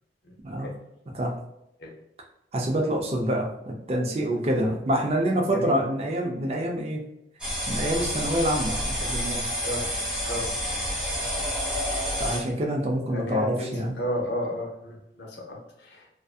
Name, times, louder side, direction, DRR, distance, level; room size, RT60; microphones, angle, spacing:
voice 1, 0.2-0.7 1.8-1.9 4.3-4.4 4.7-4.8 5.5-5.8 9.6-9.9 10.2-10.9 11.3-11.4 13.1-16.1, left 1 dB, 75° left, -1 dB, 0.7 m, -34 dB
voice 2, 2.5-7.0 7.7-9.6 12.2-13.9, right 1 dB, 35° right, 0 dB, 0.4 m, -26 dB
sound 1, 7.4-12.4, equal, 5° right, 0.8 m, -29 dB
2.5 x 2.5 x 2.3 m, 0.83 s
head